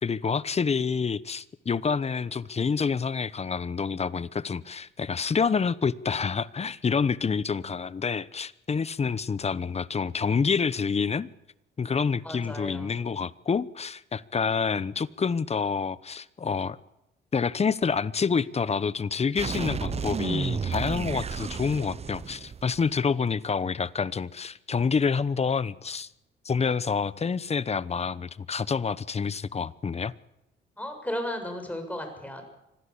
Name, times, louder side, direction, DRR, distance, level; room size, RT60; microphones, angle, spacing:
voice 1, 0.0-11.3 11.8-16.8 17.3-26.1 26.4-30.1, left 5 dB, 30° left, 1.0 m, -27 dB
voice 2, 12.2-13.0 30.8-32.4, left 1 dB, 5° left, 7.2 m, -34 dB
sound 1, 19.4-23.1, right 6 dB, 30° right, 0.8 m, -32 dB
25.5 x 16.0 x 8.6 m
cardioid pair, 90°, 20 cm